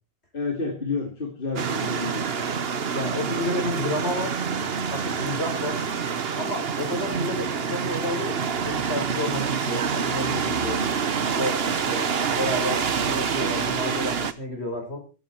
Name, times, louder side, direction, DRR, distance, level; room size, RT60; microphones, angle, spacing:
voice 1, 0.3-2.4, left 4 dB, 55° left, 2 dB, 2.6 m, -30 dB
sound 1, 1.6-14.3, right 6 dB, 70° right, 1.3 m, -27 dB
voice 2, 2.9-4.4 4.9-5.8 6.4-10.8 11.3-12.1 12.4-15.0, left 1 dB, 80° left, 4 dB, 5.6 m, -30 dB
15.5 x 15.0 x 4.5 m, 0.35 s
omnidirectional pair, 1.1 m